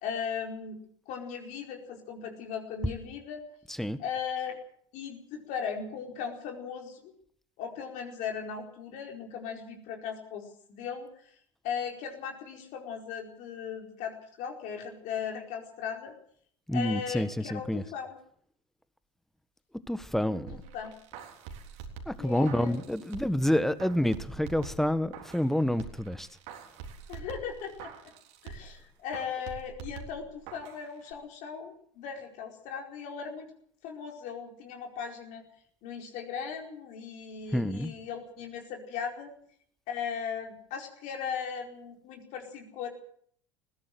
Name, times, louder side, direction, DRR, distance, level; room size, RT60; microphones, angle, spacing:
voice 1, 0.0-0.8 1.1-3.4 4.0-4.6 4.9-7.1 7.6-11.3 11.6-16.1 16.7-18.2 20.3-20.9 22.2-22.7 27.1-28.1 28.4-33.5 33.8-35.4 35.8-39.3 39.9-42.9, left 7 dB, 55° left, 2 dB, 4.6 m, -38 dB
voice 2, 3.7-4.0 16.7-17.8 19.9-20.6 22.1-26.3 37.5-37.9, left 1 dB, ahead, 14 dB, 1.5 m, -28 dB
sound 1, 20.5-23.5 23.8-25.5 25.8-28.8 29.1-30.8 31.1-31.2, right 6 dB, 65° right, 3.7 m, -45 dB
20.0 x 16.5 x 7.8 m, 0.63 s
figure-of-eight pair, 75°, 15 cm